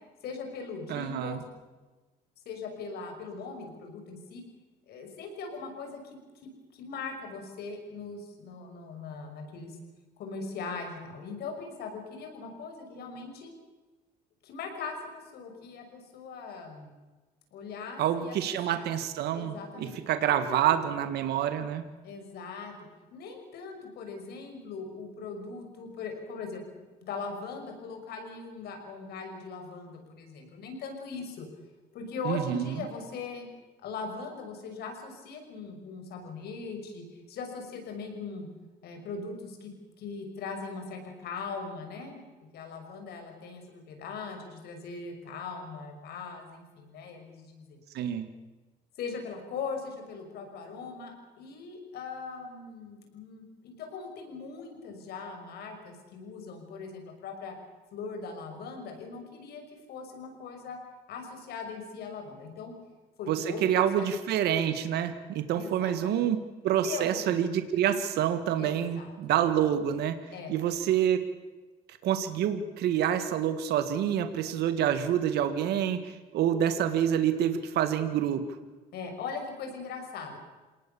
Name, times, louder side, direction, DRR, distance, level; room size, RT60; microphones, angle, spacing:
voice 1, 0.2-1.4 2.5-4.4 4.9-6.2 6.7-9.8 10.2-13.5 14.4-16.9 17.5-18.4 18.7-18.9 19.3-19.9 20.3-20.6 22.0-22.7 23.1-31.5 31.9-33.5 33.8-38.5 38.8-39.7 40.0-42.2 42.5-47.8 49.0-57.6 57.9-60.8 61.1-62.7 63.2-64.1 65.5-66.2 66.8-67.4 68.6-69.1 70.3-70.5 78.9-80.4, left 4 dB, 70° left, 4 dB, 5.9 m, -40 dB
voice 2, 0.9-1.4 18.0-21.8 32.3-32.8 47.9-48.3 63.3-70.2 70.5-71.3 71.9-78.4, right 10 dB, 75° right, 9 dB, 1.8 m, -27 dB
28.0 x 18.5 x 7.0 m, 1.2 s
cardioid pair, 110°, 17 cm